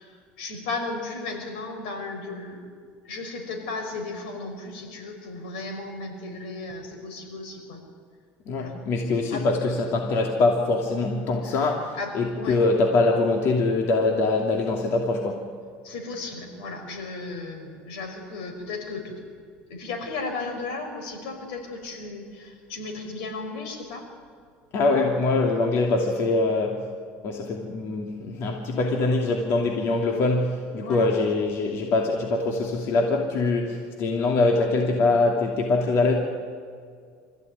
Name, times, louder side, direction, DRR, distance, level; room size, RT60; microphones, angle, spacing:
voice 1, 0.0-2.6 3.0-7.8 8.5-8.7 9.3-9.4 11.4-11.7 11.9-12.6 15.8-19.2 19.7-24.1 30.8-31.1, left 3 dB, 85° left, 3 dB, 5.6 m, -35 dB
voice 2, 8.5-15.5 24.7-26.8 27.2-36.1, left 3 dB, 55° left, 2 dB, 2.8 m, -23 dB
26.0 x 15.0 x 9.6 m, 2.1 s
supercardioid pair, 115°, 5 cm